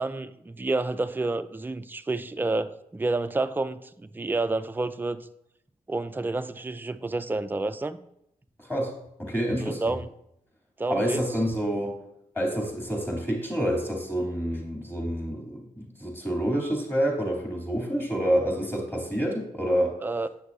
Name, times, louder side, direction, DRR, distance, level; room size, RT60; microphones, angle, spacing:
voice 1, 0.0-5.3 5.9-8.0 9.6-10.1 10.8-11.2 20.0-20.3, right 2 dB, 15° right, 11 dB, 0.4 m, -29 dB
voice 2, 8.6-8.9 9.2-10.0 10.9-11.9 12.3-19.9, equal, 15° left, -1 dB, 2.9 m, -28 dB
8.2 x 6.2 x 2.7 m, 0.77 s
cardioid pair, 50°, 16 cm